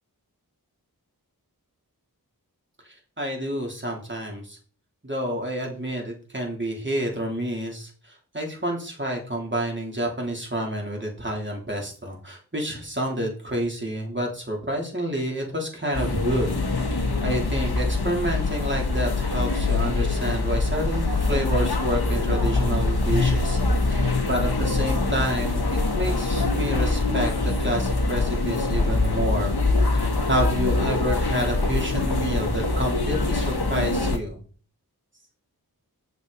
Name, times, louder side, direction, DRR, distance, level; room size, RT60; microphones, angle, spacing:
voice 1, 3.2-4.6 5.0-7.9 8.3-16.5 16.9-23.6 23.9-27.3 27.6-29.5 29.9-34.4, equal, 30° right, 0 dB, 3.3 m, -29 dB
sound 1, 15.9-34.2, left 3 dB, 85° left, 1.4 m, -24 dB
8.2 x 7.0 x 4.1 m, 0.40 s
wide cardioid pair, 45°, 37 cm